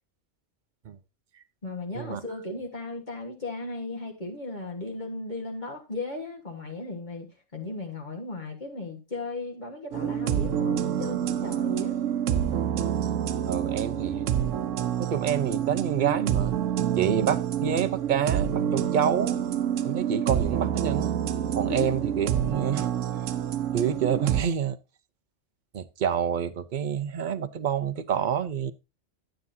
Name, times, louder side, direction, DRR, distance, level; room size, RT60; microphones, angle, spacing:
voice 1, 1.6-12.0 21.7-21.9, left 2 dB, 40° left, 1.5 m, -36 dB
sound 1, 9.9-24.4, right 9 dB, 85° right, 1.0 m, -27 dB
voice 2, 13.5-14.3 15.0-16.6 17.0-19.4 19.8-21.1 21.5-23.3 23.7-24.8 25.7-28.7, right 8 dB, 50° right, 0.6 m, -28 dB
10.5 x 9.5 x 2.6 m
omnidirectional pair, 1.2 m